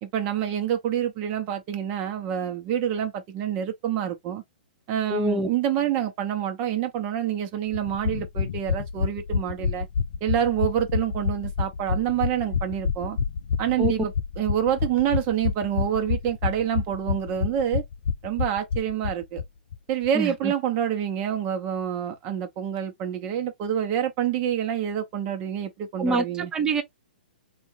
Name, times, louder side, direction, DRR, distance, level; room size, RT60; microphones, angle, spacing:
voice 1, 0.0-4.4 4.9-9.9 10.2-13.2 13.6-17.8 18.2-19.4 19.9-26.5, right 10 dB, 35° right, 1.0 m, -27 dB
voice 2, 5.1-5.5 13.8-13.9 20.1-20.5 26.0-26.8, right 2 dB, 15° right, 0.7 m, -25 dB
sound 1, 7.7-19.5 19.7-19.8 20.0-20.1, left 6 dB, 70° left, 0.4 m, -28 dB
3.6 x 2.5 x 3.0 m
hypercardioid pair, 130°, 5 cm